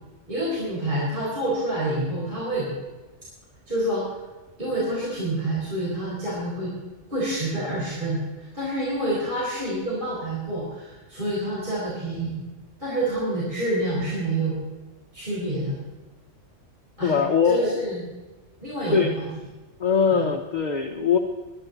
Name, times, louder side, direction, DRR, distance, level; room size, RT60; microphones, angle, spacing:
voice 1, 0.3-2.7 3.7-4.1 4.6-6.7 7.1-12.5 12.8-14.6 15.1-15.8 17.0-17.1 17.4-18.0 18.6-19.3 20.1-20.3, right 1 dB, 40° right, -8 dB, 5.0 m, -27 dB
voice 2, 17.0-17.8 18.9-19.2 19.8-21.2, left 6 dB, 35° left, 3 dB, 1.0 m, -22 dB
23.5 x 11.0 x 4.0 m, 1.2 s
omnidirectional pair, 1.3 m